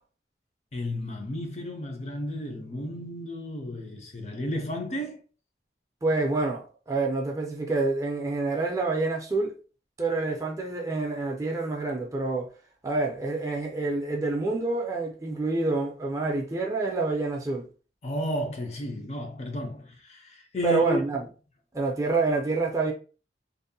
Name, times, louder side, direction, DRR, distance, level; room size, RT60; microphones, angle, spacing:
voice 1, 0.7-5.2 18.0-21.0, left 1 dB, 40° left, 0.5 m, -33 dB
voice 2, 6.0-9.5 10.0-12.5 12.8-17.7 20.6-21.3 21.7-22.9, right 3 dB, 20° right, 0.4 m, -27 dB
2.6 x 2.0 x 2.6 m
head